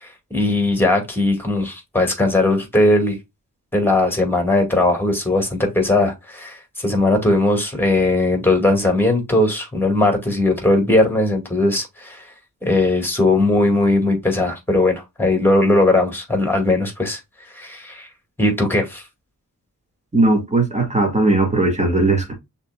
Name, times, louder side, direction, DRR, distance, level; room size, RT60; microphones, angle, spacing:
voice 1, 0.0-3.2 3.7-12.2 12.6-17.2 17.5-18.1 18.4-19.0, left 2 dB, 5° left, 2.1 m, -18 dB
voice 2, 20.1-22.3, right 2 dB, 20° right, 1.8 m, -18 dB
6.3 x 3.5 x 2.2 m
wide cardioid pair, 85°, 34 cm